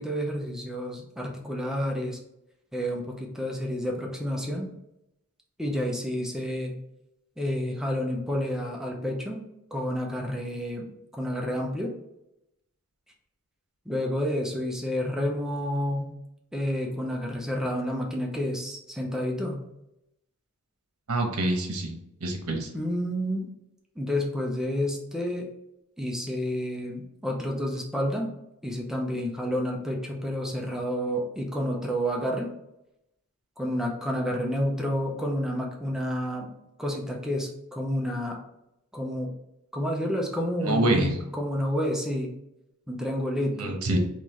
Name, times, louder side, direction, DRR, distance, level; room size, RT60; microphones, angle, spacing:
voice 1, 0.0-2.2 2.7-4.7 5.6-6.8 7.4-9.5 9.7-10.9 11.1-11.9 13.9-16.1 16.5-19.6 22.7-23.5 24.0-25.5 26.0-28.3 28.6-32.5 33.6-36.5 36.8-38.4 38.9-39.3 39.7-42.3 42.9-43.8, equal, ahead, 0 dB, 0.6 m, -29 dB
voice 2, 21.1-21.9 22.2-22.7 40.7-41.1 43.6-44.0, right 2 dB, 70° right, 3 dB, 1.0 m, -26 dB
3.9 x 3.1 x 3.0 m, 0.85 s
head